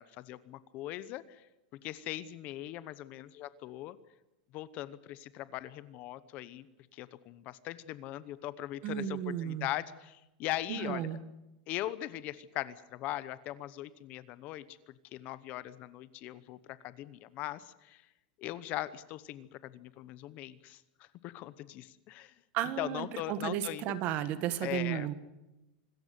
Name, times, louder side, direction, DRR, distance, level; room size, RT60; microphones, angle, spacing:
voice 1, 0.0-1.4 1.8-4.0 4.5-6.7 6.9-11.1 11.7-18.0 18.4-22.3 22.8-23.8 24.6-25.1, left 15 dB, 35° left, 16 dB, 0.9 m, -40 dB
voice 2, 8.8-9.7 10.7-11.2 22.5-25.1, right 11 dB, 35° right, 13 dB, 1.6 m, -34 dB
26.0 x 14.0 x 9.6 m, 0.95 s
supercardioid pair, 165°, 5 cm